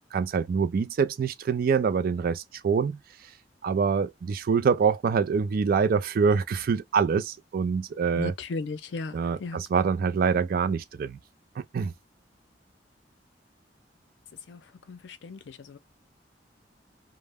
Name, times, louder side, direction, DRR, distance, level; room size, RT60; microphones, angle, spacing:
voice 1, 0.1-3.0 3.6-8.3 9.1-11.2 11.6-11.9, right 5 dB, 55° right, 0.3 m, -25 dB
voice 2, 8.1-9.6 14.5-14.6 14.9-15.8, left 3 dB, 75° left, 0.4 m, -36 dB
2.1 x 2.0 x 3.3 m
head